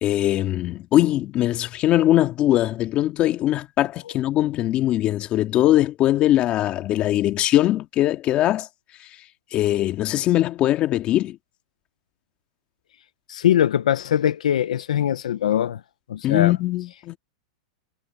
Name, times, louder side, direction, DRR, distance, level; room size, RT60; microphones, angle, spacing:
voice 1, 0.0-8.7 9.5-11.4 16.2-17.2, left 14 dB, 30° left, 2.1 m, -21 dB
voice 2, 13.3-15.8 16.1-16.5, left 10 dB, 85° left, 0.9 m, -21 dB
supercardioid pair, 145°, 4 cm